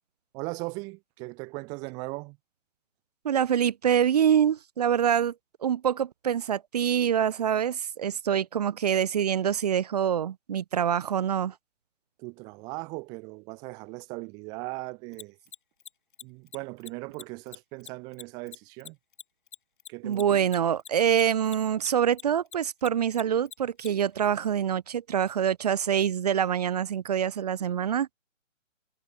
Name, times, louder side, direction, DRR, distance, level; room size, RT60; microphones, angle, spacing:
voice 1, 0.3-2.4 12.2-15.4 16.2-19.0 19.9-20.4, right 28 dB, 10° right, 1.3 m, -38 dB
voice 2, 3.2-5.3 5.6-11.5 20.0-28.1, right 9 dB, 30° right, 1.5 m, -25 dB
Mechanisms, 15.1-21.9 22.1-23.9, left 8 dB, 40° left, 2.0 m, -43 dB
hypercardioid pair, 170°, 39 cm